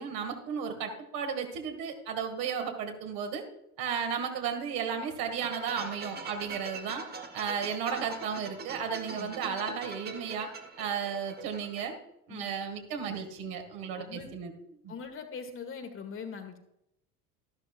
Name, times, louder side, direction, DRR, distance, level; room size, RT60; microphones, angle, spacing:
voice 1, 0.0-3.4 3.8-7.0 7.3-10.5 10.8-11.9 12.3-14.5 14.8-14.9, right 6 dB, 50° right, 4 dB, 2.3 m, -34 dB
sound 1, 5.3-11.9, right 4 dB, 20° right, 1.4 m, -43 dB
voice 2, 13.9-14.3 14.9-16.6, left 5 dB, 25° left, 6 dB, 1.7 m, -41 dB
13.5 x 12.0 x 2.5 m, 0.81 s
figure-of-eight pair, 70°, 45 cm